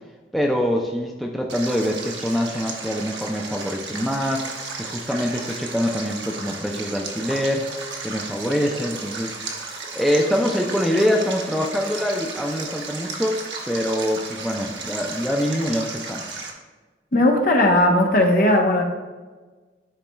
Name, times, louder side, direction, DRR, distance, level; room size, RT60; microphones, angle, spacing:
voice 1, 0.3-7.7 8.0-9.3 9.9-13.4 13.7-16.5, equal, ahead, 0 dB, 0.4 m, -24 dB
Stream, 1.5-16.5, right 4 dB, 85° right, 0.9 m, -34 dB
voice 2, 17.1-18.8, left 1 dB, 50° left, 2 dB, 0.8 m, -17 dB
10.0 x 4.1 x 2.2 m, 1.3 s
head